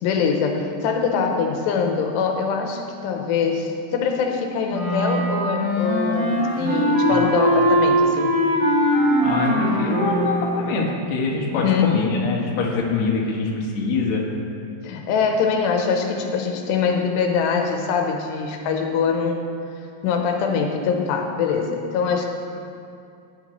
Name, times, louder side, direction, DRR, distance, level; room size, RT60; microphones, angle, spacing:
voice 1, 0.0-8.4 11.6-11.9 14.8-19.5 20.0-22.3, left 6 dB, 85° left, 3 dB, 3.0 m, -23 dB
Wind instrument woodwind instrument, 4.7-10.6, equal, 10° right, 1.9 m, -21 dB
voice 2, 9.2-14.2, left 3 dB, 60° left, -2 dB, 2.1 m, -24 dB
15.0 x 11.0 x 3.2 m, 2.5 s
omnidirectional pair, 4.8 m